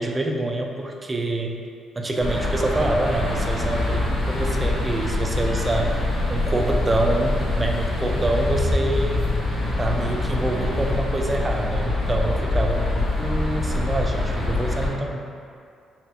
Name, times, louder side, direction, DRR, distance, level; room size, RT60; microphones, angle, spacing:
voice 1, 0.0-1.6 2.0-6.0 6.3-9.3 9.8-15.2, right 2 dB, 25° right, 2 dB, 0.4 m, -26 dB
sound 1, 2.2-14.9, left 2 dB, 65° left, 1.0 m, -24 dB
4.2 x 2.3 x 2.6 m, 2.4 s
cardioid pair, 90°, 0 cm